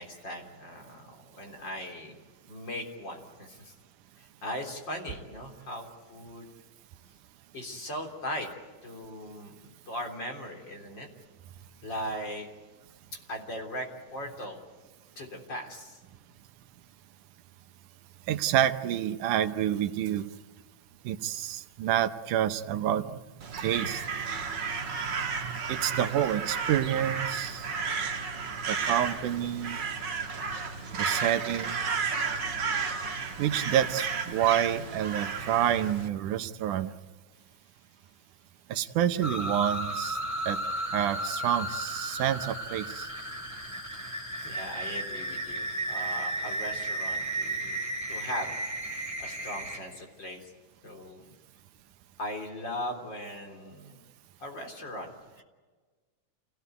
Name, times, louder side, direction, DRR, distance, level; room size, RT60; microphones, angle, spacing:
voice 1, 0.0-2.2 2.5-3.7 4.2-6.5 7.5-8.5 8.8-11.1 11.8-12.5 13.3-14.6 15.2-16.0 44.4-48.5 48.9-50.5 50.8-51.4 52.2-54.0 54.4-55.4, equal, 35° left, 2 dB, 4.1 m, -39 dB
voice 2, 18.3-20.2 21.0-23.1 23.6-24.0 25.2-27.7 28.7-29.8 31.0-31.8 33.4-36.9 38.7-40.2 40.5-40.6 40.9-43.1, right 11 dB, 80° right, 10 dB, 2.4 m, -28 dB
Crow, 23.4-36.1, right 5 dB, 40° right, 1.9 m, -33 dB
sound 1, 39.2-49.8, right 1 dB, 5° right, 5.7 m, -34 dB
28.0 x 18.0 x 9.4 m, 1.4 s
omnidirectional pair, 3.6 m